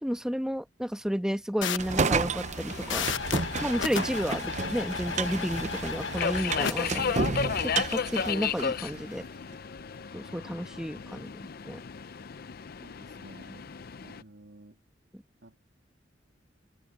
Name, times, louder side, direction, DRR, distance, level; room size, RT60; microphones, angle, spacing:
voice 1, 0.0-3.1 3.6-9.2 10.1-11.3 11.6-11.8, equal, 5° right, 1.1 m, -32 dB
sound 1, 1.6-6.7, left 6 dB, 75° left, 1.2 m, -34 dB
sound 2, 1.8-9.0, right 4 dB, 40° right, 0.7 m, -32 dB
Subway metro underground, 2.7-14.2, left 6 dB, 55° left, 0.5 m, -35 dB
voice 2, 12.8-13.7 14.0-14.8 15.4-15.6, right 2 dB, 70° right, 3.0 m, -52 dB
head